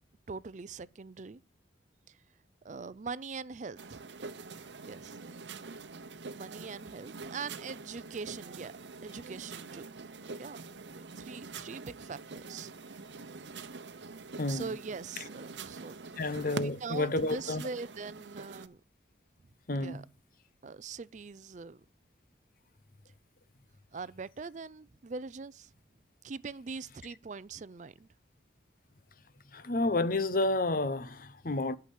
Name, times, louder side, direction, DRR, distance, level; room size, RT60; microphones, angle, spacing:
voice 1, 0.3-1.4 2.1-2.2 2.6-4.0 4.8-5.2 6.3-9.9 10.2-13.3 14.3-16.0 16.5-18.8 19.7-20.0 20.6-21.8 23.9-25.7 26.2-28.1, right 4 dB, 40° right, 0.5 m, -42 dB
sound 1, 3.8-18.7, right 4 dB, 75° right, 0.8 m, -45 dB
voice 2, 14.4-14.7 16.2-17.6 19.7-20.0 29.5-31.8, left 2 dB, 50° left, 0.8 m, -30 dB
11.5 x 5.8 x 8.1 m
head